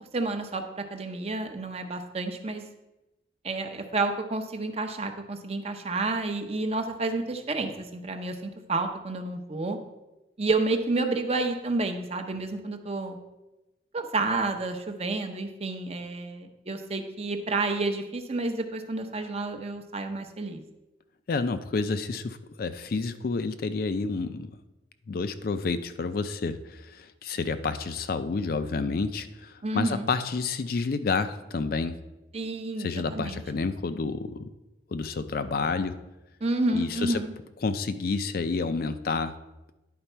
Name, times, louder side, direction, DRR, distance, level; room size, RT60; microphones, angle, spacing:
voice 1, 0.1-2.6 3.4-9.8 10.4-13.2 13.9-20.6 29.6-30.1 32.3-33.4 36.4-37.3, right 3 dB, 35° right, 6 dB, 0.6 m, -30 dB
voice 2, 21.3-24.5 25.1-32.0 32.8-34.5 34.9-36.0 36.7-37.2 37.6-39.3, left 4 dB, 55° left, 11 dB, 0.4 m, -29 dB
10.5 x 4.0 x 4.5 m, 1.0 s
head